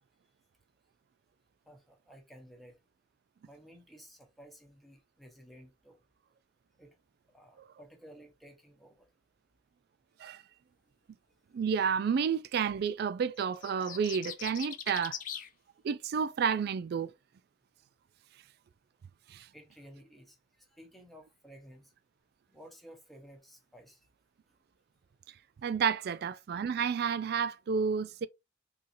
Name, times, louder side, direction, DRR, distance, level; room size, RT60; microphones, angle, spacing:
voice 1, 1.7-2.8 3.4-6.0 6.8-7.0 7.3-9.1 19.5-21.9 22.5-24.0, equal, ahead, 0.9 m, -54 dB
voice 2, 11.5-15.2 15.8-17.1 19.3-19.5 25.6-28.3, right 6 dB, 60° right, 0.3 m, -30 dB
sound 1, 13.4-15.5, left 9 dB, 45° left, 0.5 m, -41 dB
3.8 x 2.7 x 2.6 m
head